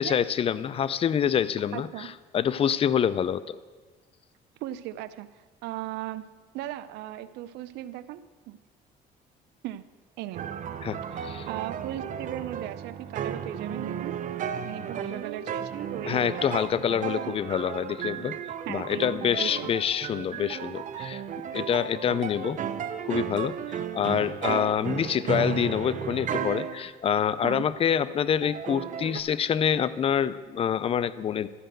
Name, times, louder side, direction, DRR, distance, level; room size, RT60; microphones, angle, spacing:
voice 1, 0.0-3.6 10.8-11.5 16.0-18.4 18.7-21.2 21.5-22.6 23.1-31.5, left 8 dB, 35° left, 16 dB, 0.4 m, -26 dB
voice 2, 1.7-2.1 4.6-6.3 6.5-8.6 9.6-9.9 10.2-10.5 11.5-14.2 14.5-16.6 17.2-17.3 18.7-19.7 27.4-27.7, right 14 dB, 85° right, 14 dB, 0.5 m, -37 dB
sound 1, 10.3-26.8 27.5-27.6 28.4-29.2, right 8 dB, 50° right, 0.7 m, -34 dB
12.5 x 5.0 x 7.8 m, 1.4 s
cardioid pair, 110°, 17 cm